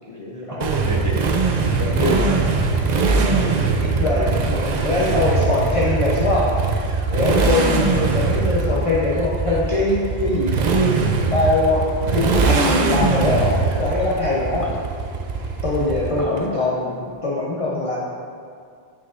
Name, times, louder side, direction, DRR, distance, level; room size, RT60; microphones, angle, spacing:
voice 1, 0.1-0.6 1.7-2.2 3.0-3.2 4.0-14.7 15.3-18.0, left 2 dB, 35° left, -6 dB, 0.7 m, -23 dB
Motorcycle, 0.6-16.4, right 4 dB, 55° right, 0.5 m, -21 dB
voice 2, 0.9-1.2 1.9-2.4 3.0-4.3 4.9-5.2 14.6-14.8 16.2-16.3, right 1 dB, 20° right, -3 dB, 0.8 m, -28 dB
9.3 x 4.9 x 2.4 m, 2.3 s
omnidirectional pair, 1.1 m